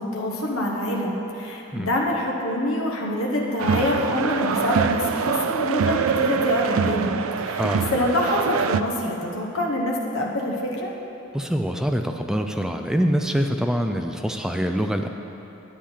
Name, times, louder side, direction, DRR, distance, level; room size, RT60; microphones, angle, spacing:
voice 1, 0.0-10.9, left 1 dB, 70° left, -2 dB, 1.2 m, -26 dB
sound 1, 3.6-8.8, right 6 dB, 70° right, 0.4 m, -24 dB
voice 2, 7.6-7.9 11.3-15.1, equal, 5° right, 5 dB, 0.4 m, -24 dB
10.5 x 8.5 x 5.7 m, 3.0 s
head